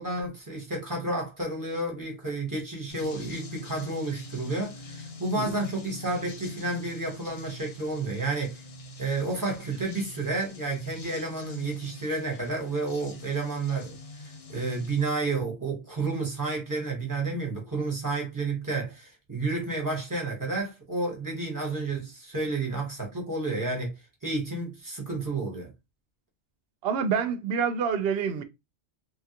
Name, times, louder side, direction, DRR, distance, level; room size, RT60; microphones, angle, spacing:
voice 1, 0.0-8.6 9.0-14.0 14.5-23.9 24.2-25.7, right 3 dB, 20° right, 1.1 m, -31 dB
sound 1, 2.9-15.1, left 2 dB, 40° left, 0.6 m, -44 dB
voice 2, 26.8-28.4, right 6 dB, 65° right, 0.7 m, -27 dB
3.0 x 2.3 x 2.8 m
omnidirectional pair, 1.1 m